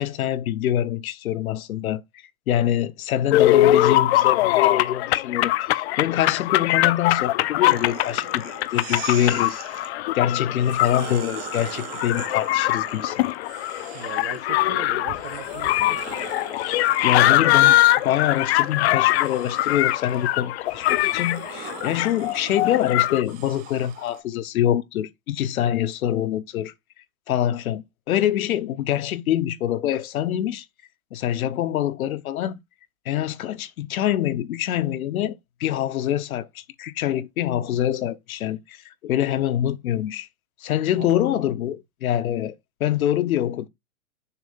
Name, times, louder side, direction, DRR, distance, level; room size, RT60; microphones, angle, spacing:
voice 1, 0.0-2.0 2.5-8.4 8.7-13.3 16.6-17.8 18.0-26.7 27.3-30.6 31.1-32.6 33.1-40.3 40.6-43.7, left 11 dB, 75° left, 0.9 m, -25 dB
sound 1, 3.3-23.2, left 15 dB, 50° left, 0.5 m, -22 dB
sound 2, 7.6-9.9 10.5-14.6 15.1-24.2, right 11 dB, 20° right, 0.5 m, -41 dB
voice 2, 13.9-16.0 40.9-41.4, right 9 dB, 70° right, 1.3 m, -39 dB
6.9 x 2.7 x 5.4 m
hypercardioid pair, 135°, 42 cm